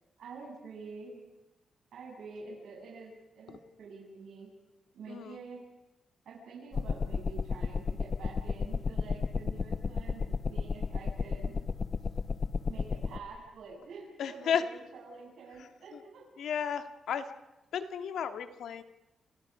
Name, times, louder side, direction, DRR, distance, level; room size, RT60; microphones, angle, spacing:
voice 1, 0.2-1.2 1.9-4.5 4.9-5.6 6.2-11.6 12.7-16.2, right 4 dB, 75° right, -3 dB, 7.9 m, -47 dB
sound 1, 6.7-13.2, left 5 dB, 35° left, 0.8 m, -33 dB
voice 2, 14.2-14.6 15.9-16.0 16.4-17.3 17.7-18.8, left 8 dB, 75° left, 8 dB, 1.9 m, -33 dB
29.5 x 29.0 x 5.0 m, 0.99 s
wide cardioid pair, 175°, 0 cm